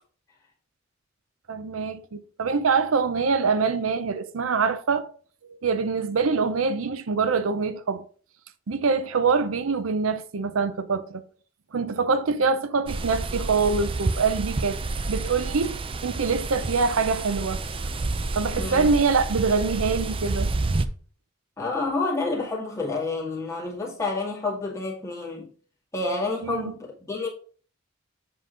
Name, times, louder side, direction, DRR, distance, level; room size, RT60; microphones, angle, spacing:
voice 1, 1.5-5.1 5.4-8.0 8.7-11.2 11.7-14.8 15.1-17.6 18.3-20.5 26.4-26.7, right 4 dB, 75° right, 0.6 m, -24 dB
sound 1, 12.9-20.9, right 3 dB, 25° right, 0.5 m, -29 dB
voice 2, 18.5-18.9 21.6-25.5 25.9-27.3, left 3 dB, 15° left, 2.1 m, -29 dB
7.7 x 3.9 x 5.1 m
head